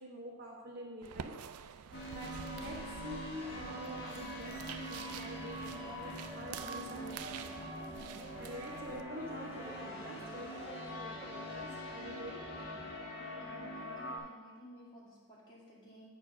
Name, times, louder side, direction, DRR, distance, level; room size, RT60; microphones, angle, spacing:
voice 1, 0.0-1.4 1.9-7.7 8.0-12.5, equal, 45° right, -2 dB, 1.1 m, -47 dB
sound 1, 1.0-9.0, right 8 dB, 90° right, 0.4 m, -48 dB
sound 2, 1.9-14.2, equal, 50° left, 1.4 m, -44 dB
sound 3, 3.4-13.0, right 1 dB, 10° right, 0.6 m, -54 dB
voice 2, 13.4-16.1, left 1 dB, 20° left, -7 dB, 2.3 m, -55 dB
8.4 x 4.5 x 5.9 m, 1.4 s
head